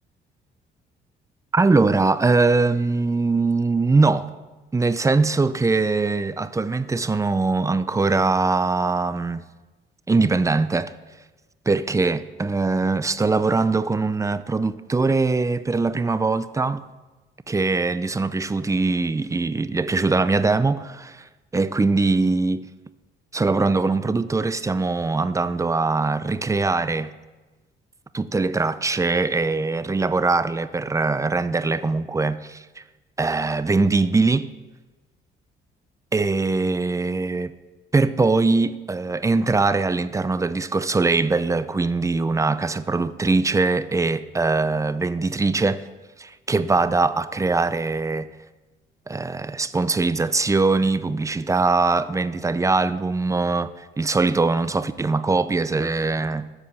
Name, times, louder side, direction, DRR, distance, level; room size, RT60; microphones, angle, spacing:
voice 1, 1.5-4.3 4.7-9.4 10.1-10.9 11.7-16.8 17.5-21.2 21.5-22.7 23.3-27.1 28.1-32.6 33.2-34.5 36.1-37.5 37.9-45.8 46.2-48.3 49.1-56.4, right 3 dB, 15° right, 0.5 m, -22 dB
12.0 x 4.9 x 6.4 m
cardioid pair, 90°, 20 cm